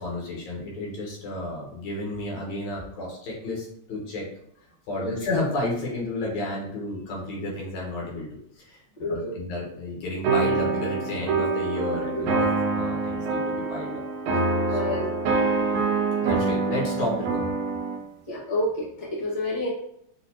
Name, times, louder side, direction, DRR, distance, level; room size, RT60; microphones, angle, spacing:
voice 1, 0.0-4.3 4.9-8.3 8.6-8.8 9.1-14.0 14.3-15.1 16.2-17.5, left 2 dB, 70° left, -3 dB, 2.4 m, -32 dB
voice 2, 9.0-9.4 12.1-12.2 14.7-15.1 18.3-19.7, left 1 dB, 30° left, -6 dB, 0.6 m, -29 dB
sound 1, 10.2-18.0, right 3 dB, 90° right, 2.0 m, -25 dB
6.4 x 2.5 x 2.8 m, 0.71 s
omnidirectional pair, 3.3 m